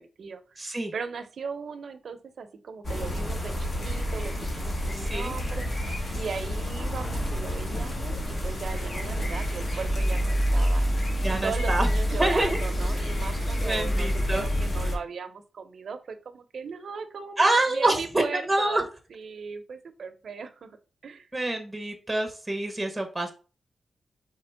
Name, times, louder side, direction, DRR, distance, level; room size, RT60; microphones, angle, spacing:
voice 1, 0.0-0.6 0.9-10.9 11.3-18.8 19.1-20.8 21.0-21.3, right 5 dB, 70° right, 8 dB, 0.6 m, -38 dB
voice 2, 0.6-0.9 4.9-5.3 11.2-11.9 12.2-12.6 13.6-14.5 17.4-18.8 21.3-23.3, right 2 dB, 10° right, 4 dB, 0.8 m, -26 dB
sound 1, 2.8-15.0, equal, 45° left, 1.2 m, -28 dB
4.4 x 3.3 x 3.4 m, 0.35 s
wide cardioid pair, 110°, 0 cm